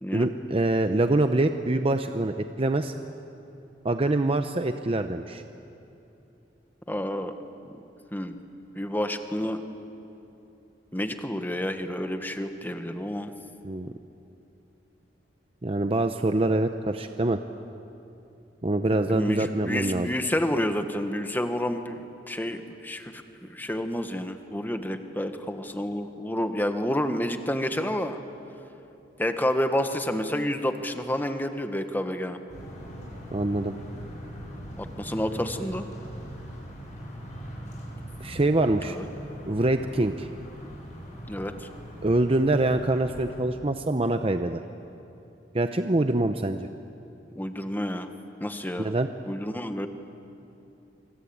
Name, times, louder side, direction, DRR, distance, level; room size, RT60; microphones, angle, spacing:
voice 1, 0.1-2.9 3.8-5.4 13.6-13.9 15.6-17.4 18.6-20.1 33.3-33.7 38.2-39.0 39.4-40.3 42.0-44.6 45.5-46.7 48.8-49.1, right 2 dB, 35° right, 7 dB, 0.8 m, -25 dB
voice 2, 6.9-7.3 8.1-8.3 8.7-9.6 10.9-13.3 19.1-23.2 23.5-28.2 29.2-32.4 34.8-35.9 38.8-39.0 41.3-41.5 47.3-48.1 48.4-48.9 49.3-49.9, left 1 dB, 10° left, 7 dB, 1.4 m, -29 dB
sound 1, 32.5-43.4, equal, 45° left, 7.8 m, -41 dB
25.5 x 25.0 x 8.7 m, 2.8 s
head